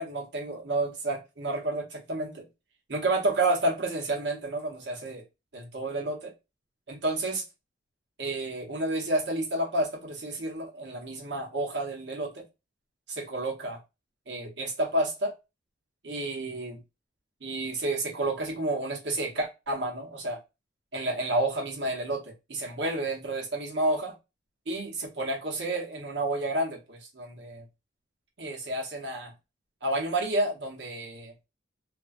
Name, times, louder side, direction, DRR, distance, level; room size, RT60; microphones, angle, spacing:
voice 1, 0.0-2.5 2.9-5.2 5.5-6.3 6.9-7.4 8.2-12.4 13.1-13.8 14.3-15.3 16.0-16.8 17.4-20.4 20.9-24.1 24.7-27.6 28.4-29.3 29.8-31.3, right 2 dB, 65° right, 0.8 m, -30 dB
2.4 x 2.2 x 2.4 m
head